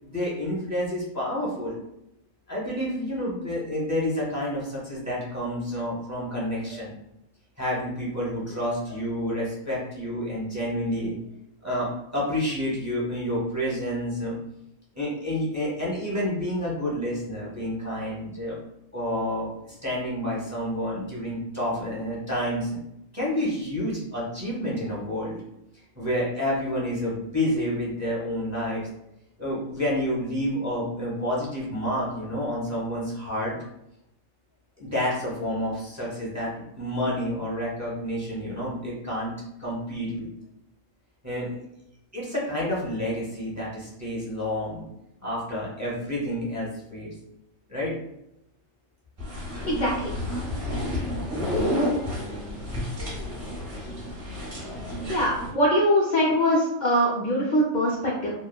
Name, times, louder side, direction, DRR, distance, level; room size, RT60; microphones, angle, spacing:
voice 1, 0.1-1.8 2.5-6.9 7.6-11.1 11.6-14.3 14.9-18.6 18.9-22.8 23.1-25.4 26.0-28.9 29.4-33.5 34.8-39.3 39.6-40.3 41.2-41.6 42.1-44.8 45.2-47.1 47.7-47.9, equal, 15° right, -6 dB, 0.8 m, -29 dB
sound 1, 49.2-55.5, left 1 dB, 45° right, 1.5 m, -30 dB
voice 2, 49.7-50.1 55.1-58.3, equal, 75° left, -5 dB, 0.4 m, -22 dB
3.0 x 2.2 x 2.3 m, 0.84 s
omnidirectional pair, 1.4 m